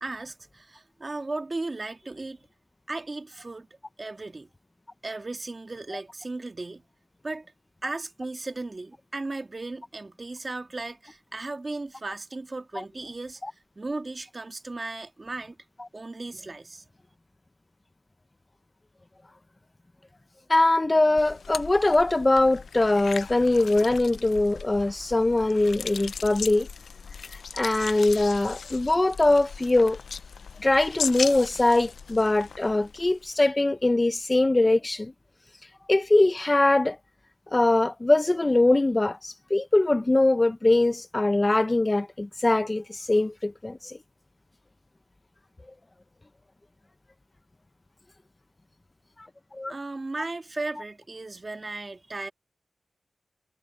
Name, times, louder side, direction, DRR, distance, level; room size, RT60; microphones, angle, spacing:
voice 1, 0.0-2.5 2.9-3.7 4.0-4.5 5.0-6.8 7.2-7.4 7.8-13.4 13.8-15.6 15.9-16.8 49.7-52.3, right 2 dB, 40° right, 2.0 m, -36 dB
voice 2, 20.5-26.7 27.5-30.0 30.6-35.1 35.9-37.0 37.5-44.0 49.5-49.7, left 2 dB, 25° left, 0.7 m, -22 dB
sound 1, 21.2-33.4, left 6 dB, 85° left, 0.5 m, -38 dB
wide cardioid pair, 70°, 0 cm